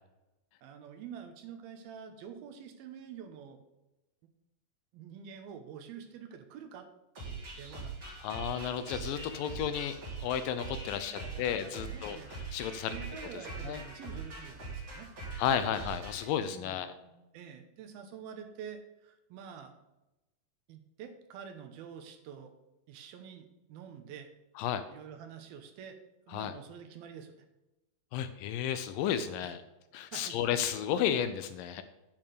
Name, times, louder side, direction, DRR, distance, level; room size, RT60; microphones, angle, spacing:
voice 1, 0.6-3.6 4.9-6.9 7.3-8.0 11.0-12.3 12.9-15.1 15.6-15.8 16.5-19.8 20.7-22.5 22.9-24.3 24.9-26.0 26.3-27.3 29.4-29.6 30.1-30.4, right 7 dB, 85° right, 7 dB, 2.9 m, -47 dB
sound 1, 7.1-16.3, right 3 dB, 35° right, 3.9 m, -42 dB
voice 2, 8.2-12.9 13.6-13.8 15.4-16.9 24.6-24.8 26.3-26.5 28.1-29.6 29.9-31.8, left 9 dB, 80° left, 11 dB, 2.1 m, -33 dB
8.8 x 5.8 x 6.7 m, 0.99 s
omnidirectional pair, 4.3 m